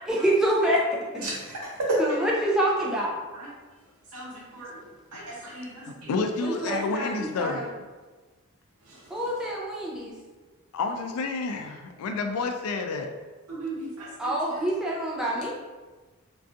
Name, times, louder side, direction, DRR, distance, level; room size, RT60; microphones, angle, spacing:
voice 1, 0.1-0.8 2.0-3.1 6.4-7.7 9.1-10.1 14.2-15.5, right 1 dB, 5° right, -5 dB, 0.4 m, -26 dB
voice 2, 1.2-1.5 1.9-2.0 3.3-3.5 4.1-4.7 5.1-6.1 13.5-14.1, right 2 dB, 90° right, -4 dB, 0.8 m, -33 dB
voice 3, 5.9-7.6 10.7-13.1, left 4 dB, 90° left, 5 dB, 0.3 m, -29 dB
2.5 x 2.3 x 2.4 m, 1.3 s
head